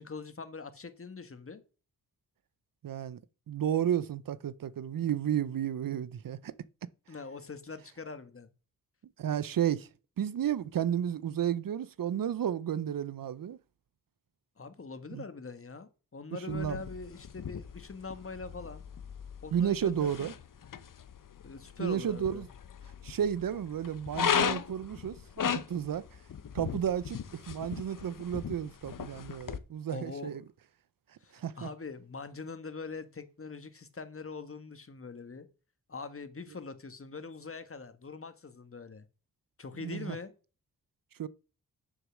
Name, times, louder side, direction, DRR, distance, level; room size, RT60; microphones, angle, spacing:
voice 1, 0.0-1.6 7.1-8.5 14.6-18.8 19.4-20.3 21.4-22.4 29.9-30.4 31.2-35.5 35.9-39.0 39.6-40.3, left 4 dB, 40° left, 1.5 m, -43 dB
voice 2, 2.8-3.2 3.5-6.5 9.2-9.9 10.2-13.6 15.1-15.2 16.3-16.8 19.5-20.3 21.8-22.5 23.0-26.1 26.5-30.4 31.3-31.7 39.8-40.2 41.2-41.3, right 9 dB, 70° right, 0.7 m, -32 dB
sound 1, 16.5-29.6, left 7 dB, 60° left, 1.0 m, -37 dB
7.2 x 6.8 x 6.3 m
cardioid pair, 55°, 35 cm